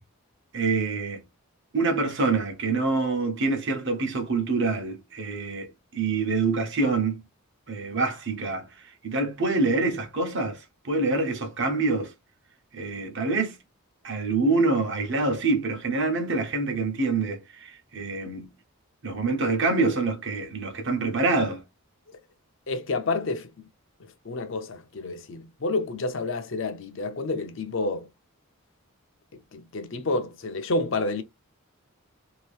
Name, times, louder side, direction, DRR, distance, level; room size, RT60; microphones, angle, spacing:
voice 1, 0.5-1.2 1.7-7.2 7.7-8.7 9.0-12.1 12.7-13.6 14.0-18.5 19.0-21.6, right 3 dB, 55° right, 0.8 m, -26 dB
voice 2, 22.7-23.7 24.2-28.1 29.5-31.2, left 3 dB, 55° left, 0.6 m, -29 dB
2.8 x 2.6 x 3.2 m
head